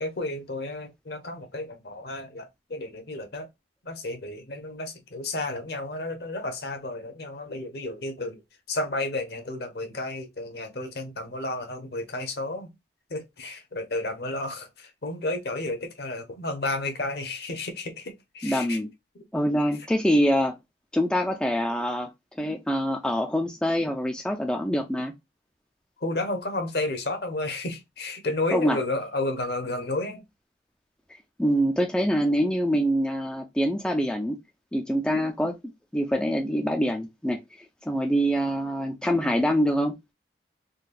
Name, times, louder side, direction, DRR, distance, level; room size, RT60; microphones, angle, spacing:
voice 1, 0.0-3.5 3.9-8.4 8.7-12.7 13.1-14.7 15.0-18.0 18.3-18.8 26.0-30.2, left 2 dB, 60° left, 0.8 m, -32 dB
voice 2, 18.4-18.9 19.3-20.5 20.9-22.1 22.4-25.1 28.5-28.8 31.4-34.4 34.7-35.6 35.9-37.4 37.9-40.0, equal, 5° left, 0.3 m, -25 dB
3.9 x 2.2 x 2.4 m
head